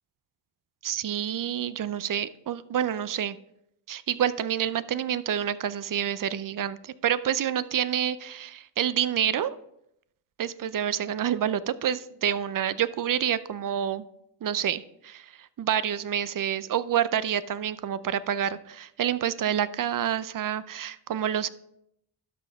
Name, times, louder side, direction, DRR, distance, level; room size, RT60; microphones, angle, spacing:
voice 1, 0.8-3.4 3.9-9.6 10.4-14.0 14.4-21.5, right 9 dB, 45° right, 16 dB, 0.5 m, -28 dB
12.0 x 5.7 x 3.5 m, 0.78 s
cardioid pair, 65°, 47 cm